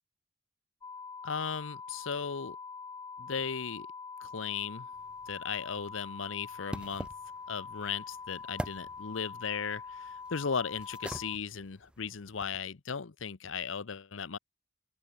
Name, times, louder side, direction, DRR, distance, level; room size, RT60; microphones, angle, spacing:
sound 1, 0.8-11.4, left 5 dB, 20° left, 0.4 m, -44 dB
voice 1, 1.2-2.6 3.2-3.9 4.2-4.9 5.3-7.1 7.5-14.4, left 6 dB, 80° left, 0.8 m, -36 dB
sound 2, 4.9-12.6, equal, 5° right, 1.7 m, -46 dB
open air
head